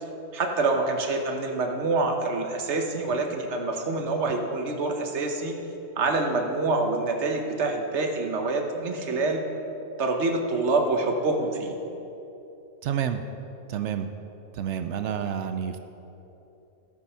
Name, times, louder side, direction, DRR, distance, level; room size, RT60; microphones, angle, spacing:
voice 1, 0.3-5.6 6.0-9.4 10.0-11.8, right 3 dB, 50° right, 3 dB, 1.2 m, -26 dB
voice 2, 12.8-13.2 13.7-14.1 14.6-15.8, right 9 dB, 70° right, 8 dB, 0.6 m, -29 dB
13.5 x 6.9 x 5.6 m, 3.0 s
omnidirectional pair, 1.7 m